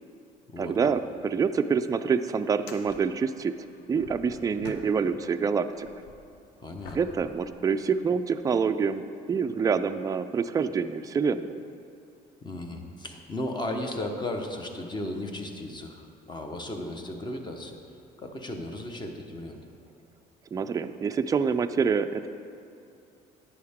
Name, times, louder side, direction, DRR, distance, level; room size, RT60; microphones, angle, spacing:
voice 1, 0.6-3.5 3.9-5.9 6.9-11.6 20.5-22.3, right 6 dB, 20° right, 9 dB, 0.3 m, -26 dB
sound 1, 2.5-5.3 5.7-8.4 9.0-9.1 13.3-13.4 14.8-14.9, left 3 dB, 85° left, 0.9 m, -49 dB
voice 2, 6.6-7.0 12.4-17.8 18.2-19.6, left 1 dB, 25° left, 4 dB, 1.0 m, -35 dB
11.0 x 8.7 x 3.6 m, 2.6 s
cardioid pair, 110°, 17 cm